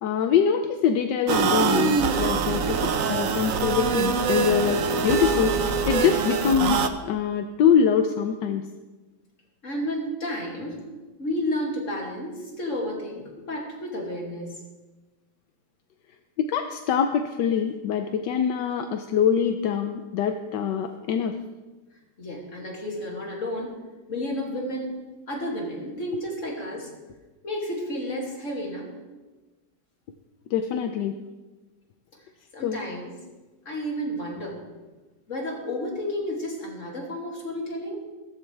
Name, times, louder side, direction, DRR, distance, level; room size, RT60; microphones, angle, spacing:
voice 1, 0.0-8.7 16.4-21.3 30.5-31.1 32.6-32.8, left 7 dB, 80° left, 6 dB, 1.3 m, -24 dB
sound 1, 1.3-6.9, right 5 dB, 60° right, 1.0 m, -24 dB
voice 2, 9.6-10.8 11.2-14.5 22.2-23.8 24.1-25.0 25.3-27.0 27.4-28.9 32.5-33.2 33.7-34.6 35.3-38.0, left 1 dB, 45° left, -1 dB, 2.9 m, -31 dB
16.0 x 14.0 x 3.4 m, 1.2 s
omnidirectional pair, 1.9 m